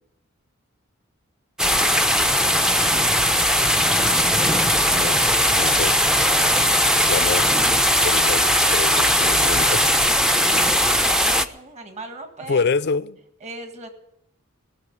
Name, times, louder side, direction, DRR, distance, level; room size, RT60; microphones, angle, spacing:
sound 1, 1.6-11.4, equal, 5° right, 0.5 m, -19 dB
voice 1, 4.9-6.0 7.1-7.5 8.0-9.8 10.5-10.6 12.5-13.2, left 4 dB, 55° left, 0.5 m, -26 dB
voice 2, 10.6-12.7 13.4-13.9, right 3 dB, 35° right, 1.7 m, -38 dB
19.0 x 6.9 x 9.5 m
head